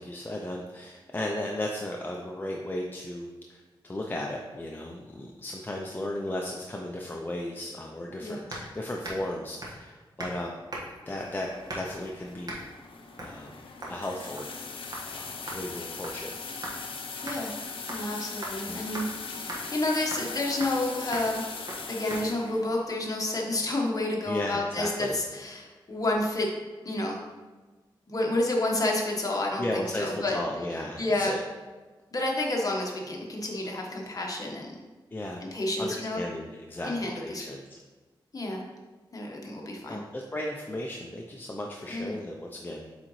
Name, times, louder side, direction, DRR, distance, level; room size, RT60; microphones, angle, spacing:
voice 1, 0.0-10.6 11.1-12.5 13.2-13.5 13.9-14.5 15.1-16.3 18.6-18.9 24.2-25.2 29.6-31.4 35.1-35.4 35.8-37.8 39.9-42.9, left 1 dB, 20° left, -1 dB, 0.5 m, -35 dB
sound 1, 8.5-8.7 9.0-9.3 9.6-9.8 10.2-10.4 10.7-11.1 11.7-12.0 12.5-12.6 13.2-13.4 13.8-14.0 14.4-14.6 14.9-15.1 15.5-16.8 17.3-17.4 17.9-18.1 18.4-18.6 18.9-19.1 19.5-19.6 20.1-20.3 20.6-20.8 21.1-21.3 21.7-21.8 22.1-22.2, right 1 dB, 45° right, 1.5 m, -39 dB
sound 2, 11.0-22.9, left 4 dB, 85° left, 0.6 m, -40 dB
voice 2, 17.2-17.5 17.9-19.0 19.3-21.4 21.9-26.5 26.8-27.2 28.1-30.4 31.0-31.4 32.1-34.7 35.4-36.3 36.8-37.5 38.3-38.6 39.1-40.0 41.9-42.2, left 2 dB, 40° left, -1 dB, 1.2 m, -30 dB
8.0 x 3.8 x 3.1 m, 1.3 s
wide cardioid pair, 95°, 9 cm